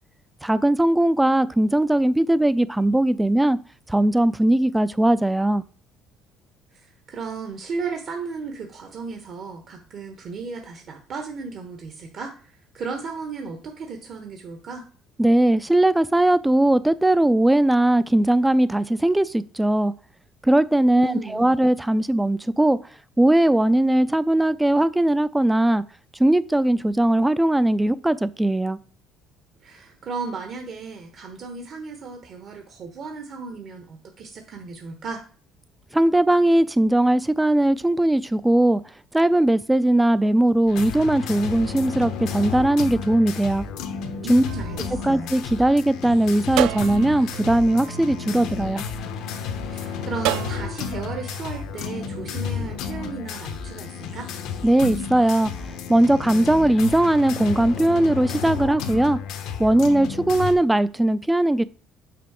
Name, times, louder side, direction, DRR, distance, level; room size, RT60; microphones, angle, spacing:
voice 1, 0.4-3.6 3.9-5.6 15.2-19.9 20.4-22.8 23.2-25.8 26.2-28.8 35.9-38.8 39.1-43.6 44.3-44.4 45.0-48.9 54.6-55.5 55.9-59.2 59.6-61.6, right 1 dB, 10° right, 0.3 m, -19 dB
voice 2, 6.7-14.9 20.9-21.5 29.6-35.2 44.2-45.3 49.7-54.3, right 4 dB, 55° right, 1.1 m, -35 dB
sound 1, 40.7-60.5, left 6 dB, 75° left, 0.8 m, -32 dB
sound 2, 44.5-45.9 46.6-49.1 50.2-51.6, right 14 dB, 85° right, 0.4 m, -31 dB
5.9 x 4.6 x 3.6 m
supercardioid pair, 90°, 0 cm